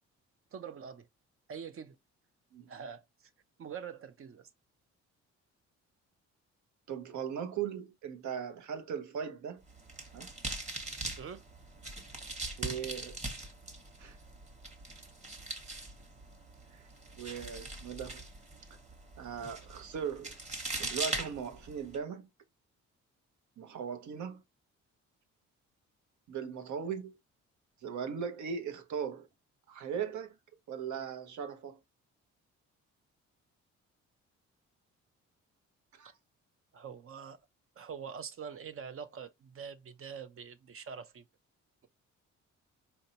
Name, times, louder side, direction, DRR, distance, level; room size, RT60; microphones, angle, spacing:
voice 1, 0.5-1.1 1.5-2.0 2.7-3.0 3.6-4.5 11.2-11.5 36.7-37.4 37.8-41.2, right 7 dB, 45° right, 0.6 m, -44 dB
voice 2, 6.9-9.6 10.1-10.3 12.6-13.2 14.0-14.2 16.7-16.8 17.2-18.2 19.2-20.3 20.8-22.3 23.6-24.4 26.3-27.1 27.8-29.3 29.7-30.3 30.7-31.8 36.0-36.1, right 7 dB, 70° right, 0.9 m, -38 dB
sound 1, 9.6-22.0, right 2 dB, 25° right, 1.2 m, -41 dB
4.4 x 2.7 x 2.8 m
cardioid pair, 90°, 30 cm